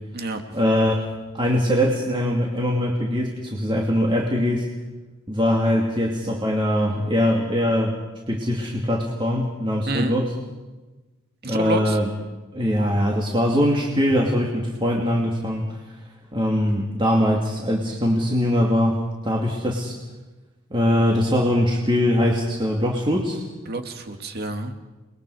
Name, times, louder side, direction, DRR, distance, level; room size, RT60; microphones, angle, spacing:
voice 1, 0.5-1.0 1.3-4.7 5.3-7.9 8.3-10.4 11.5-12.1 12.5-15.6 16.3-19.0 19.2-19.9 20.7-23.4, equal, 25° right, -2 dB, 2.6 m, -22 dB
voice 2, 9.9-10.2 11.4-12.0 23.7-24.7, right 2 dB, 50° right, 5 dB, 2.1 m, -28 dB
30.0 x 21.5 x 4.9 m, 1.2 s
head